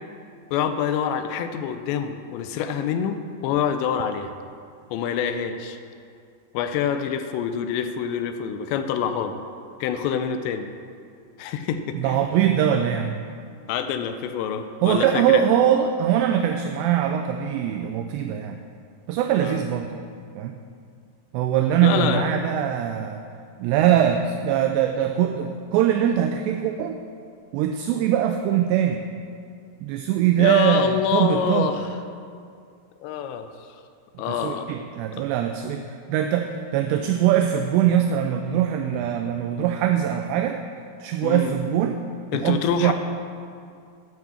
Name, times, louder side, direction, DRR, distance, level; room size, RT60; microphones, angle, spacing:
voice 1, 0.5-4.3 4.9-5.8 6.5-9.3 9.8-10.7 11.4-12.3 13.7-15.5 19.4-19.6 21.8-22.3 30.4-31.9 33.0-33.8 34.2-34.7 41.2-41.5 42.3-42.9, left 8 dB, 85° left, 8 dB, 2.7 m, -26 dB
voice 2, 11.9-13.2 14.8-18.6 19.1-20.0 20.4-20.5 21.3-23.2 23.6-27.0 27.5-29.0 29.8-31.7 34.3-40.6 41.0-42.0 42.3-42.9, right 10 dB, 85° right, 6 dB, 2.5 m, -22 dB
10.5 x 5.9 x 7.1 m, 2.3 s
omnidirectional pair, 5.4 m